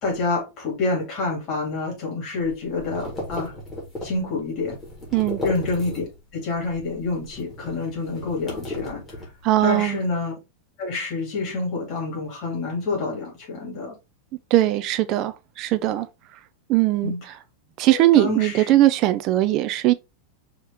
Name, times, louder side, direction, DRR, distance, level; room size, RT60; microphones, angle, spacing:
voice 1, 0.0-3.5 4.0-4.8 5.4-6.1 6.3-9.3 9.6-10.3 10.8-14.0 17.0-17.2 17.9-18.7, left 3 dB, 30° left, 2.4 m, -27 dB
sound 1, 2.4-6.3 6.6-9.7, left 1 dB, 10° left, 1.6 m, -35 dB
voice 2, 9.4-10.0 14.5-16.1 16.7-17.1 17.8-19.9, right 15 dB, 30° right, 0.3 m, -20 dB
4.9 x 2.8 x 3.5 m
supercardioid pair, 175°, 0 cm